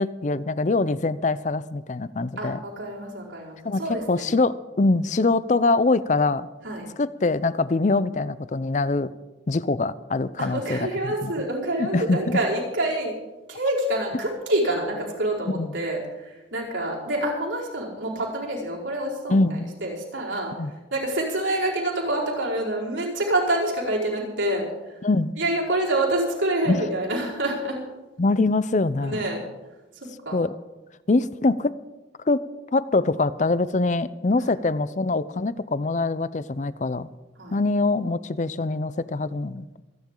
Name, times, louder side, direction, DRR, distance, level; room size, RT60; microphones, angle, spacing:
voice 1, 0.0-2.6 3.6-6.5 7.0-9.1 9.5-11.3 11.8-12.4 15.5-15.8 19.3-19.7 20.6-20.7 25.0-25.3 26.7-26.8 28.2-29.3 30.3-30.6 31.1-31.8 32.3-32.4 32.7-37.1 37.5-39.8, left 3 dB, 40° left, 16 dB, 0.5 m, -24 dB
voice 2, 2.4-4.3 6.6-6.9 10.4-13.1 13.5-20.5 20.9-24.6 25.4-27.8 29.0-29.4 30.2-30.4 37.4-37.6, right 1 dB, 80° right, -4 dB, 4.9 m, -27 dB
26.5 x 10.5 x 3.8 m, 1.1 s
head